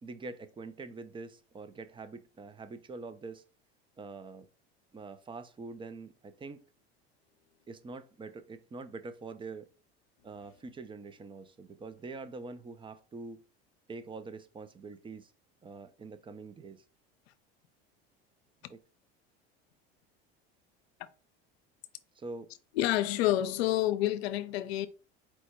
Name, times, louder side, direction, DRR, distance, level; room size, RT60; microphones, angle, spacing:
voice 1, 0.0-3.4 4.0-4.5 4.9-6.6 7.7-9.7 10.2-13.4 13.9-15.3 15.6-16.8 18.7-18.8 22.1-22.5, right 3 dB, 15° right, 0.5 m, -44 dB
voice 2, 22.7-24.9, left 14 dB, 75° left, 0.6 m, -28 dB
4.4 x 2.1 x 4.4 m
hypercardioid pair, 85°, 31 cm